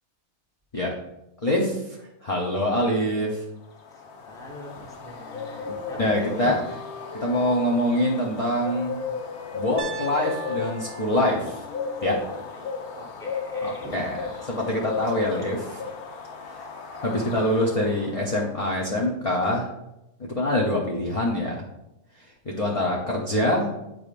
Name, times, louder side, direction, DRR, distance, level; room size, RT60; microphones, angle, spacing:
voice 1, 1.4-3.4 6.0-6.6 7.2-9.0 9.5-11.6 12.0-12.2 13.6-15.9 16.5-16.7 17.0-19.7 20.2-21.6 22.4-23.7, left 1 dB, 35° left, -2 dB, 0.6 m, -25 dB
sound 1, 3.7-18.3, left 4 dB, 90° left, 1.2 m, -35 dB
voice 2, 3.9-6.5 12.1-12.7 12.9-14.3 16.4-16.7 22.9-23.1, equal, 5° left, -2 dB, 0.9 m, -41 dB
Wind instrument woodwind instrument, 4.8-8.3 8.6-12.7, left 3 dB, 55° left, 1.1 m, -43 dB
Piano, 9.8-13.8, right 5 dB, 55° right, 0.7 m, -42 dB
7.8 x 5.0 x 2.5 m, 0.89 s
omnidirectional pair, 1.6 m